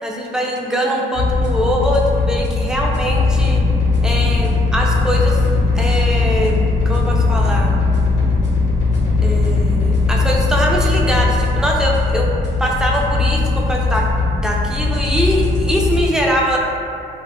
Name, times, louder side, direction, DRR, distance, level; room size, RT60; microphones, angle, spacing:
voice 1, 0.0-3.6 4.0-5.4 5.7-7.8 9.2-12.3 12.6-14.0 14.3-16.6, equal, 5° right, -2 dB, 0.4 m, -21 dB
sound 1, 1.1-16.1, left 3 dB, 65° left, 0.6 m, -18 dB
2.1 x 2.1 x 3.6 m, 2.6 s
cardioid pair, 90°, 20 cm